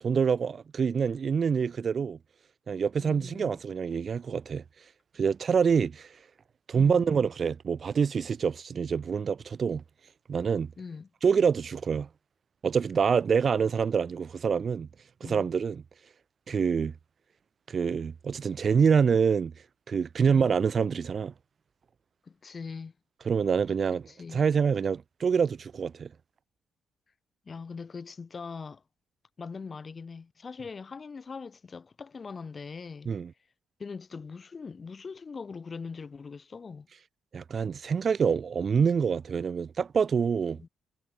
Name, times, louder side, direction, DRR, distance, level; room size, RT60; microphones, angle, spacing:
voice 1, 0.0-2.2 2.7-4.6 5.1-6.1 6.7-9.8 10.3-10.7 11.2-12.1 12.6-14.9 15.2-15.8 16.5-16.9 17.7-19.5 19.9-21.3 23.3-24.0 24.3-26.1 33.1-33.3 37.3-40.6, right 6 dB, 45° right, 1.1 m, -26 dB
voice 2, 3.0-3.6 6.8-7.2 10.8-11.1 15.2-15.5 20.3-20.5 22.2-22.9 23.9-24.4 27.4-28.8 29.4-33.1 33.8-36.9 40.6-40.7, left 5 dB, 35° left, 2.7 m, -41 dB
cardioid pair, 90°, 0 cm